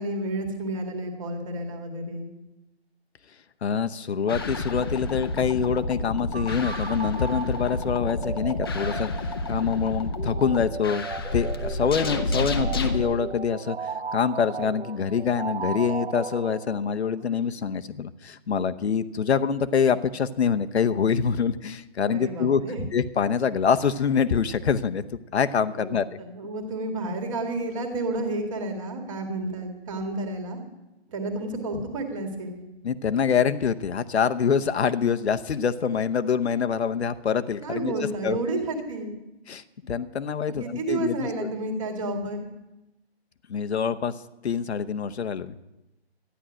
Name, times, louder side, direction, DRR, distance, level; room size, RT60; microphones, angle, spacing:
voice 1, 0.0-2.3 22.1-22.9 25.7-30.6 31.1-32.6 37.6-39.2 40.5-42.5, right 2 dB, 30° right, 4 dB, 1.9 m, -31 dB
voice 2, 3.6-9.1 9.5-11.1 11.3-22.6 22.9-25.0 25.3-26.1 32.8-38.0 38.2-38.4 39.5-41.3 43.5-44.1 44.4-45.5, left 7 dB, 80° left, 10 dB, 0.9 m, -25 dB
sound 1, 4.3-13.0, left 2 dB, 20° left, 0.7 m, -30 dB
sound 2, 6.3-17.1, right 5 dB, 75° right, 1.2 m, -36 dB
13.0 x 10.5 x 6.2 m, 0.95 s
hypercardioid pair, 170°, 33 cm